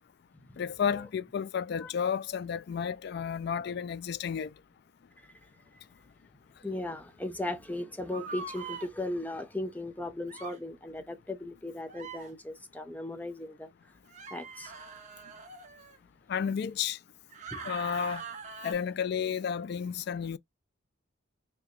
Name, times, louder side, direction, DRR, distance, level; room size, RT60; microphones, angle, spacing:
voice 1, 0.6-4.5 16.3-17.0 17.6-18.2 18.6-20.4, left 7 dB, 55° left, 0.3 m, -32 dB
voice 2, 6.6-13.7 14.3-14.7 17.5-17.6, left 1 dB, 10° left, 0.6 m, -37 dB
sound 1, 8.1-8.9 10.3-10.6 11.9-12.3 14.1-16.0 17.3-18.7, right 4 dB, 35° right, 1.0 m, -42 dB
4.8 x 2.2 x 3.1 m
head